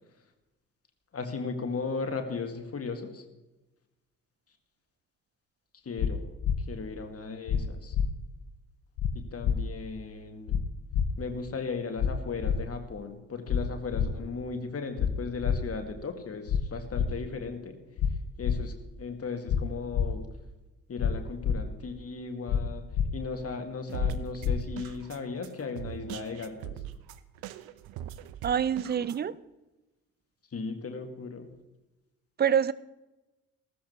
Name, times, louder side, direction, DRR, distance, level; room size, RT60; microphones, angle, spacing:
voice 1, 1.1-3.2 5.8-6.2 6.6-8.0 9.1-10.6 11.2-17.8 18.4-20.3 20.9-22.8 23.1-26.8 30.5-31.5, left 4 dB, 35° left, 6 dB, 2.0 m, -36 dB
sound 1, 6.0-6.1 6.4-6.6 7.5-7.6 7.9-8.1 9.0-9.1 9.4-9.6 10.5-10.6 10.9-11.1 12.0-12.1 12.4-12.6 13.5-13.6 13.9-14.1 15.0-15.1 15.4-15.6 16.5-16.6 16.9-17.1 18.0-18.1 18.4-18.6 19.5-19.6 19.9-20.1 21.0-21.1 21.4-21.6 22.5-22.6 22.9-23.1 24.0-24.1 24.4-24.6, left 8 dB, 55° left, 0.9 m, -26 dB
sound 2, 23.9-29.2, right 12 dB, 55° right, 0.8 m, -41 dB
voice 2, 28.4-29.3 32.4-32.7, right 8 dB, 25° right, 18 dB, 0.5 m, -26 dB
15.5 x 14.0 x 3.3 m, 1.0 s
figure-of-eight pair, 45°, 43 cm